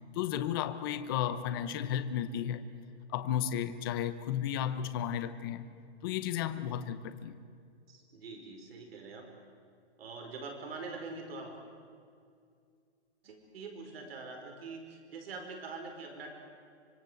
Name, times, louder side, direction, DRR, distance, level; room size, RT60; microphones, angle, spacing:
voice 1, 0.1-2.6 3.1-5.7 6.0-7.4, left 10 dB, 20° left, 11 dB, 0.8 m, -33 dB
voice 2, 7.9-9.3 10.0-11.5 13.2-16.3, right 3 dB, 60° right, 3 dB, 4.8 m, -44 dB
25.5 x 24.0 x 7.9 m, 2.3 s
hypercardioid pair, 170°, 33 cm